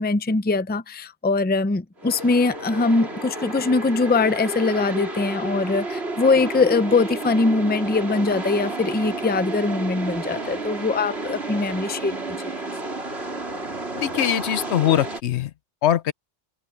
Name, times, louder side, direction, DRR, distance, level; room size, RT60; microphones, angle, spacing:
voice 1, 0.0-12.4, left 3 dB, 10° left, 0.5 m, -22 dB
sound 1, 2.0-15.2, right 2 dB, 65° right, 4.4 m, -31 dB
voice 2, 13.9-15.5 15.8-16.1, left 10 dB, 75° left, 1.0 m, -22 dB
omnidirectional pair, 1.2 m